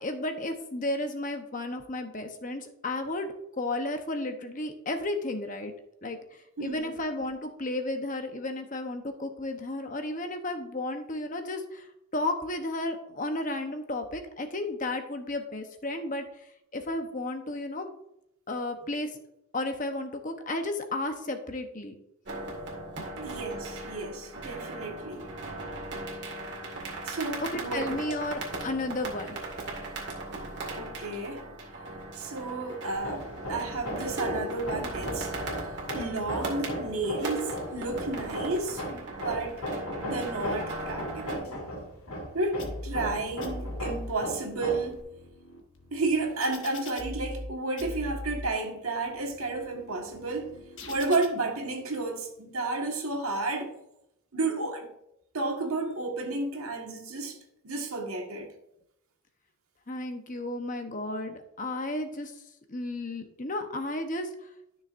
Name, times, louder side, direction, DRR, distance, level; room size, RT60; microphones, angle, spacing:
voice 1, 0.0-5.7 6.0-16.2 16.7-17.9 18.5-19.1 19.5-21.9 23.0-23.1 27.5-29.4 59.9-62.3 62.7-64.3, left 2 dB, 35° left, 6 dB, 0.9 m, -33 dB
voice 2, 6.6-6.9 23.2-25.3 27.0-28.2 30.6-31.5 32.2-35.3 35.9-39.6 40.0-41.5 42.3-45.0 45.9-50.5 50.9-53.8 54.3-54.9 55.3-57.4 57.6-58.5, right 3 dB, 80° right, 2 dB, 1.7 m, -32 dB
sound 1, 22.3-41.4, right 2 dB, 50° right, 2.1 m, -38 dB
Hammer, 32.9-45.0, equal, 85° left, 2.3 m, -37 dB
sound 2, 42.6-43.1 43.4-44.1 44.7-47.5 47.8-48.5 49.1-51.3, left 1 dB, 60° left, 1.4 m, -41 dB
13.0 x 6.4 x 2.6 m, 0.80 s
head